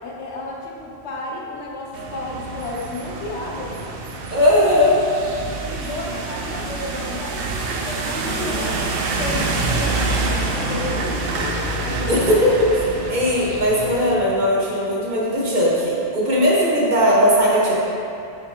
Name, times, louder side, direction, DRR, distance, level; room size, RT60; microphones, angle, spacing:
voice 1, 0.0-4.0 5.7-7.4 7.8-8.9 9.1-12.2, left 2 dB, 75° left, -2 dB, 1.2 m, -32 dB
sound 1, 1.9-14.1, right 3 dB, 60° right, 0.8 m, -27 dB
voice 2, 4.3-5.0 5.6-5.7 12.1-17.7, equal, 45° right, -6 dB, 1.2 m, -18 dB
6.9 x 5.0 x 3.2 m, 2.6 s
omnidirectional pair, 1.2 m